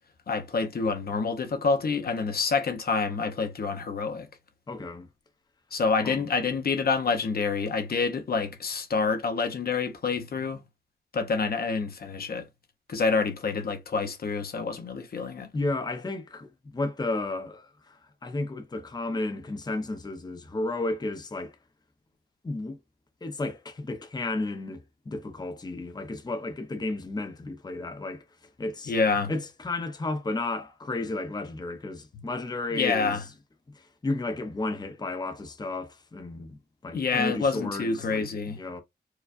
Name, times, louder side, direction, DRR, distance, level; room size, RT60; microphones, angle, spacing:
voice 1, 0.3-4.3 5.7-10.6 11.1-12.5 12.9-15.5 28.9-29.3 32.7-33.2 36.9-38.6, left 4 dB, 60° left, 0.8 m, -27 dB
voice 2, 4.7-5.1 6.0-6.2 15.5-21.6 22.4-22.8 23.2-28.2 28.6-28.9 29.3-33.3 33.7-38.8, left 2 dB, 25° left, 0.7 m, -33 dB
4.7 x 2.3 x 2.5 m
wide cardioid pair, 105°, 18 cm